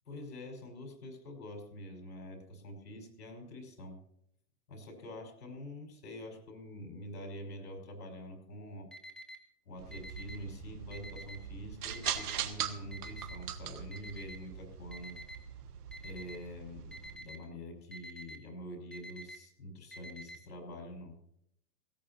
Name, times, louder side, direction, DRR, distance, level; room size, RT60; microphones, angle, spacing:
voice 1, 0.1-4.0 4.7-8.9 9.7-15.2 16.0-21.2, left 1 dB, 90° left, 3 dB, 5.4 m, -46 dB
Alarm, 8.9-9.4 9.9-10.4 10.9-11.4 11.9-12.4 12.9-13.4 13.9-14.4 14.9-15.4 15.9-16.4 16.9-17.4 17.9-18.4 18.9-19.4 19.9-20.4, equal, ahead, 0.8 m, -47 dB
sound 1, 9.8-17.1, right 9 dB, 70° right, 1.4 m, -41 dB
18.5 x 17.0 x 2.9 m, 0.72 s
hypercardioid pair, 150°, 48 cm